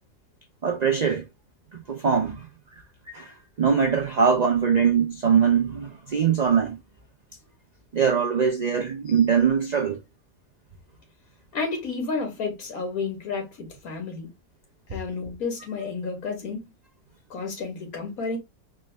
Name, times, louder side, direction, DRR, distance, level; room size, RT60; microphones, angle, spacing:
voice 1, 0.6-1.3 1.9-2.5 3.1-6.8 7.9-10.0, right 7 dB, 70° right, 0.4 m, -22 dB
voice 2, 11.5-14.3 14.9-16.6 17.3-18.4, left 4 dB, 80° left, 1.7 m, -31 dB
4.4 x 2.2 x 3.2 m
omnidirectional pair, 1.5 m